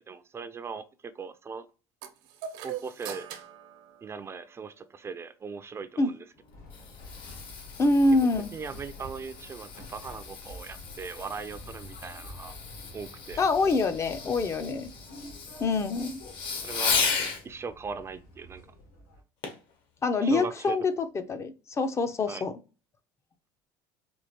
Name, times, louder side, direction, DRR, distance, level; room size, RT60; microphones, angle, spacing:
voice 1, 0.1-1.7 2.6-3.3 4.0-6.2 7.8-7.9 8.5-12.5 12.9-13.4 16.6-17.0 17.4-18.6 20.2-20.8 22.3-22.4, right 5 dB, 25° right, 0.4 m, -39 dB
sound 1, 2.0-4.7, right 9 dB, 75° right, 0.7 m, -41 dB
Fireworks, 6.4-17.4 19.4-19.7 20.3-20.4, left 5 dB, 60° left, 1.2 m, -35 dB
sound 2, 6.5-19.2, left 1 dB, 75° left, 2.0 m, -48 dB
voice 2, 7.8-8.5 13.4-14.9 15.6-16.2 20.0-22.5, left 3 dB, 30° left, 0.5 m, -25 dB
4.5 x 2.4 x 2.9 m
supercardioid pair, 100°, 10 cm